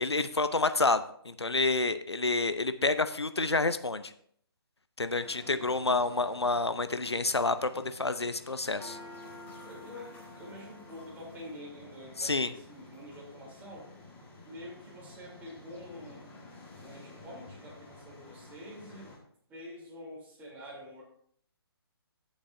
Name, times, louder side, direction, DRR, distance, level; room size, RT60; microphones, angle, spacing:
voice 1, 0.0-4.1 5.0-9.0 12.2-12.5, left 3 dB, 90° left, 12 dB, 0.7 m, -29 dB
sound 1, 5.2-19.2, left 2 dB, 15° left, 1.9 m, -51 dB
voice 2, 5.4-5.7 9.6-13.9 14.4-16.3 16.8-19.1 19.5-21.0, equal, 10° right, -4 dB, 3.5 m, -47 dB
15.5 x 7.3 x 2.7 m, 0.62 s
figure-of-eight pair, 140°, 13 cm